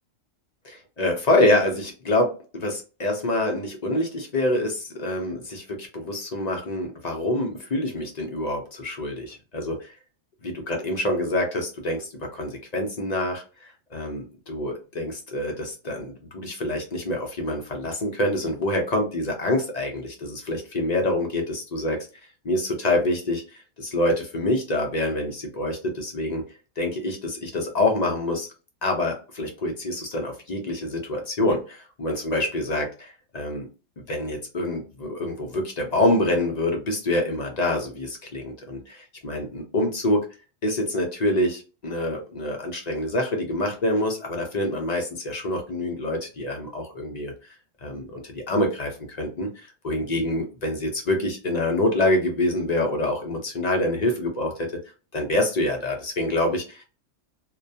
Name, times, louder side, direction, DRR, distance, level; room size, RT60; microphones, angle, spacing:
voice 1, 0.7-10.0 10.4-22.0 22.4-26.4 26.8-28.5 28.8-33.7 34.1-40.3 40.6-47.3 47.8-54.7 55.1-56.8, left 1 dB, 50° left, 2 dB, 0.5 m, -26 dB
2.2 x 2.1 x 2.6 m, 0.34 s
omnidirectional pair, 1.3 m